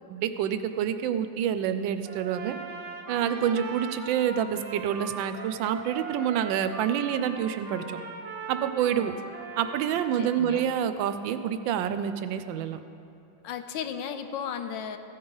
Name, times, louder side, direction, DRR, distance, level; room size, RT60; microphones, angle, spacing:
voice 1, 0.1-2.5 3.1-8.0 8.5-9.1 9.6-12.8, right 9 dB, 85° right, 11 dB, 1.3 m, -27 dB
Trumpet, 2.0-10.4, right 4 dB, 45° right, 1.1 m, -40 dB
voice 2, 10.1-10.7 13.4-15.0, left 8 dB, 80° left, 8 dB, 1.4 m, -35 dB
15.0 x 9.6 x 3.9 m, 2.6 s
omnidirectional pair, 2.0 m